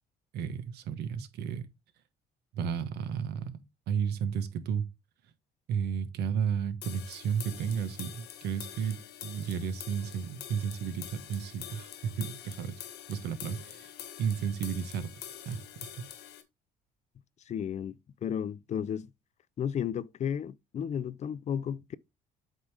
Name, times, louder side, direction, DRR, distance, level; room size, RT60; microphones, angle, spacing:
voice 1, 0.3-1.7 2.5-3.6 3.9-4.8 5.7-12.8 13.1-13.9 14.2-16.0, right 7 dB, 75° right, 1.3 m, -33 dB
sound 1, 6.8-16.4, left 10 dB, 75° left, 1.5 m, -46 dB
voice 2, 17.5-17.9 18.2-19.1 19.6-21.9, left 8 dB, 45° left, 0.5 m, -33 dB
8.2 x 3.9 x 4.8 m
cardioid pair, 110°, 17 cm